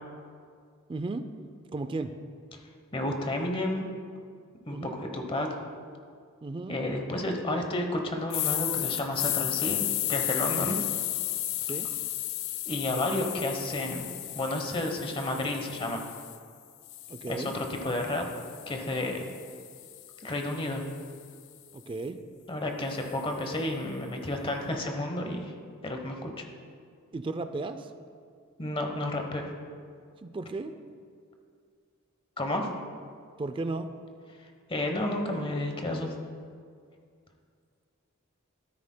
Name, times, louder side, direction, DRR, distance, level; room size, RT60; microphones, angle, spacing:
voice 1, 0.9-1.3 1.7-2.1 4.7-5.0 6.4-6.8 10.5-10.9 11.7-11.9 17.1-17.5 21.7-22.2 27.1-27.9 30.2-30.8 33.4-33.9, right 3 dB, 25° right, 10 dB, 0.4 m, -35 dB
voice 2, 2.9-3.9 4.7-5.6 6.7-9.8 10.1-10.8 12.7-14.0 14.3-16.0 17.3-18.3 18.7-19.2 20.2-20.8 22.5-25.5 25.8-26.4 28.6-29.5 32.4-32.7 34.7-36.1, left 1 dB, 25° left, 3 dB, 0.9 m, -31 dB
sound 1, 8.3-16.4 16.9-21.1, left 14 dB, 60° left, 0.4 m, -34 dB
13.0 x 9.8 x 2.2 m, 2.2 s
head